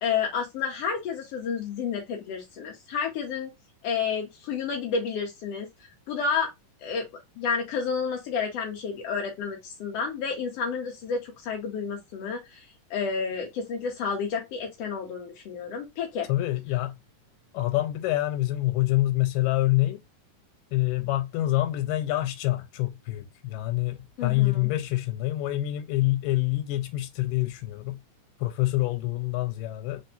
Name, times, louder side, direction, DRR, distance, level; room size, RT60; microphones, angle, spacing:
voice 1, 0.0-3.5 3.8-6.5 6.8-7.1 7.4-16.3 24.2-24.7, left 6 dB, 70° left, 1.6 m, -30 dB
voice 2, 16.3-16.9 17.5-20.0 20.7-28.0 28.4-30.0, left 16 dB, 90° left, 2.3 m, -26 dB
4.4 x 3.9 x 2.6 m
omnidirectional pair, 3.8 m